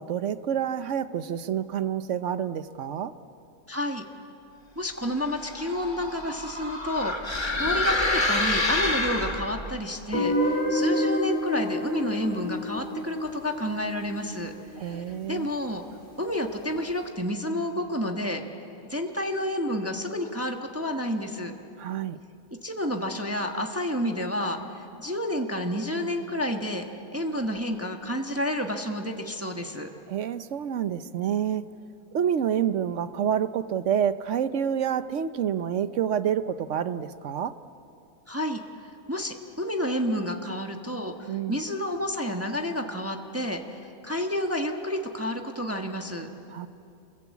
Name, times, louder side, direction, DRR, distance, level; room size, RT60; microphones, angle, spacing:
voice 1, 0.0-3.1 14.8-15.5 21.8-22.2 30.1-31.6 32.1-37.6 41.3-41.6 46.5-46.7, right 9 dB, 60° right, 12 dB, 1.1 m, -28 dB
voice 2, 3.7-4.0 4.8-14.5 14.8-15.8 16.2-18.4 18.9-21.5 22.6-26.9 27.1-29.9 38.3-46.3, left 1 dB, 10° right, 3 dB, 1.3 m, -30 dB
sound 1, 5.3-9.7, left 2 dB, 20° left, 1.7 m, -27 dB
Guitar, 10.1-15.0, left 1 dB, 35° left, 5.3 m, -29 dB
28.5 x 21.5 x 8.3 m, 2.7 s
omnidirectional pair, 1.5 m